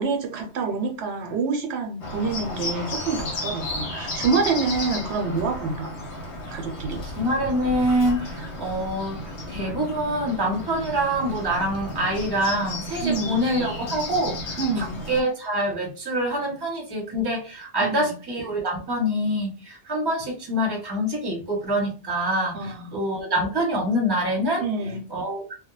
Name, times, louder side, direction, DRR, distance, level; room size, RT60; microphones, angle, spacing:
voice 1, 0.0-5.9 6.5-7.0 13.0-13.4 14.6-15.0 17.8-18.1 22.5-22.9 24.6-25.1, right 4 dB, 75° right, 3 dB, 0.8 m, -27 dB
Bird, 2.0-15.2, left 1 dB, 85° left, 1.0 m, -33 dB
voice 2, 7.2-24.7 25.1-25.5, equal, 25° right, -1 dB, 0.7 m, -25 dB
2.2 x 2.0 x 3.0 m, 0.35 s
omnidirectional pair, 1.1 m